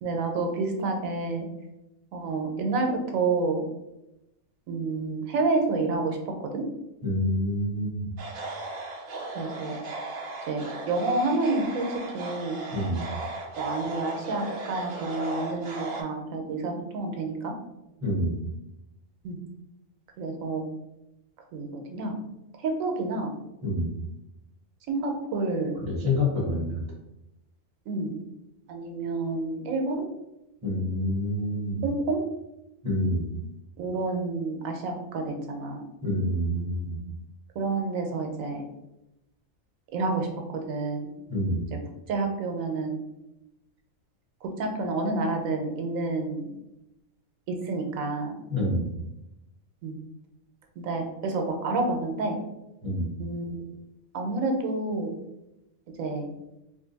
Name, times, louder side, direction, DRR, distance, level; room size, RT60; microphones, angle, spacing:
voice 1, 0.0-1.5 2.1-3.6 4.7-6.2 6.5-6.6 9.3-9.8 10.5-12.6 13.6-17.5 19.2-19.4 20.2-20.6 21.5-22.2 22.6-23.3 24.9-25.8 27.9-28.2 28.7-30.1 31.8-32.2 33.8-35.8 37.6-38.6 39.9-40.3 40.7-41.1 42.1-43.0 44.4-46.5 47.5-48.4 49.8-49.9 50.8-52.4 53.2-53.5 54.1-55.1 56.0-56.3, right 3 dB, 85° right, 3 dB, 1.0 m, -29 dB
voice 2, 7.0-7.9 12.7-13.0 18.0-18.4 23.6-23.9 25.8-26.7 30.6-31.8 32.8-33.3 36.0-37.0 41.3-41.6 48.5-48.9 52.8-53.1, left 1 dB, 30° right, -3 dB, 0.9 m, -27 dB
sound 1, 8.2-16.0, right 2 dB, 55° right, 0.6 m, -36 dB
2.6 x 2.5 x 3.8 m, 0.91 s
omnidirectional pair, 1.4 m